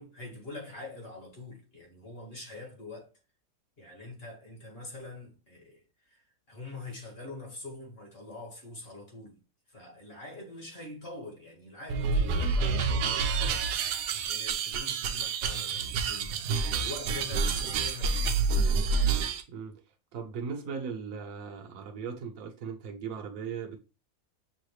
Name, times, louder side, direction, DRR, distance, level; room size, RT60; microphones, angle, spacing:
voice 1, 0.0-3.1 3.8-9.4 9.7-18.2, left 2 dB, 40° left, 1.8 m, -44 dB
sound 1, 11.9-19.4, right 4 dB, 80° right, 1.1 m, -28 dB
voice 2, 19.5-19.8 20.1-23.8, right 6 dB, 60° right, 1.2 m, -38 dB
6.4 x 2.5 x 3.1 m
omnidirectional pair, 1.7 m